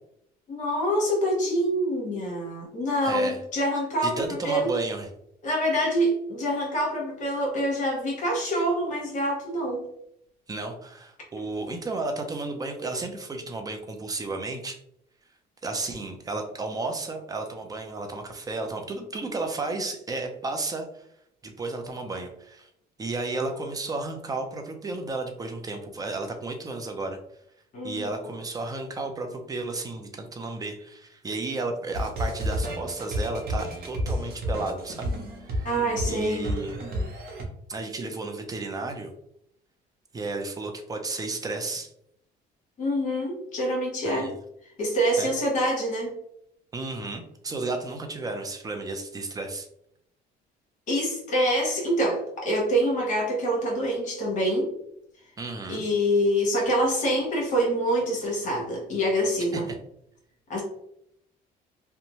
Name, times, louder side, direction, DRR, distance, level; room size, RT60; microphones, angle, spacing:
voice 1, 0.5-4.7 5.4-9.9 27.7-28.3 35.6-36.5 42.8-44.3 44.8-46.2 50.9-54.7 55.7-59.7 60.5-60.6, equal, 45° left, -2 dB, 1.1 m, -26 dB
voice 2, 3.0-3.4 4.0-5.1 10.5-14.8 15.6-21.0 21.4-22.7 23.0-27.2 27.8-35.1 35.4-35.7 36.1-36.8 37.7-39.1 40.1-41.9 44.0-44.3 45.2-45.3 46.7-49.7 55.4-55.8 59.5-59.6, right 3 dB, 20° right, 4 dB, 0.5 m, -33 dB
sound 1, 31.9-37.4, equal, 65° right, 0.8 m, -31 dB
2.6 x 2.2 x 3.0 m, 0.73 s
cardioid pair, 110°, 17 cm